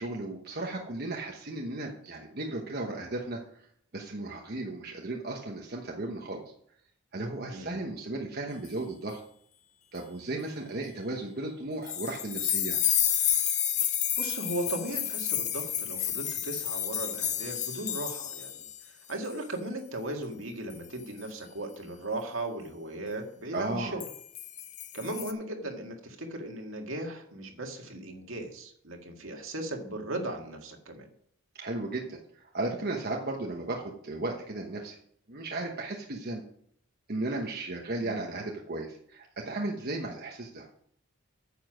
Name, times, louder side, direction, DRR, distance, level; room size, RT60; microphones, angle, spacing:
voice 1, 0.0-3.4 3.9-6.4 7.1-9.2 9.9-12.8 23.5-24.0 31.6-35.0 35.3-36.4 37.1-40.7, right 2 dB, 50° right, 0 dB, 1.1 m, -35 dB
voice 2, 7.5-7.8 13.8-13.9 14.2-24.0 24.9-31.1 38.0-38.2, right 1 dB, 70° right, 2 dB, 2.0 m, -37 dB
sound 1, 11.9-18.8 19.1-19.3 20.7-21.0 24.0-25.3, left 10 dB, 35° left, 0.7 m, -30 dB
9.4 x 7.1 x 6.2 m, 0.65 s
head